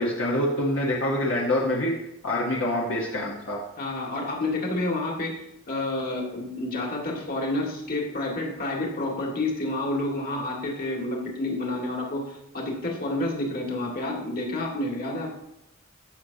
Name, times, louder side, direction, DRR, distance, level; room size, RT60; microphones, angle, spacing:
voice 1, 0.0-1.9 2.2-3.6, left 1 dB, 70° left, -3 dB, 1.3 m, -25 dB
voice 2, 3.8-15.3, left 2 dB, 50° left, -1 dB, 2.2 m, -29 dB
14.5 x 6.4 x 2.9 m, 0.86 s
head